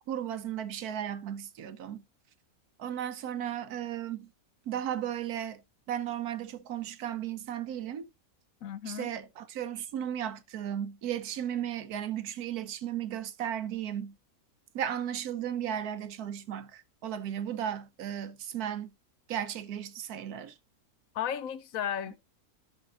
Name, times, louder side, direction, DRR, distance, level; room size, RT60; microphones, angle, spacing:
voice 1, 0.1-2.0 2.8-4.3 4.7-5.6 5.9-8.1 8.8-14.1 14.7-18.9 19.3-20.5, right 10 dB, 85° right, 1.3 m, -35 dB
voice 2, 8.6-9.1 21.1-22.2, left 9 dB, 70° left, 1.0 m, -34 dB
13.0 x 5.7 x 2.4 m
omnidirectional pair, 1.6 m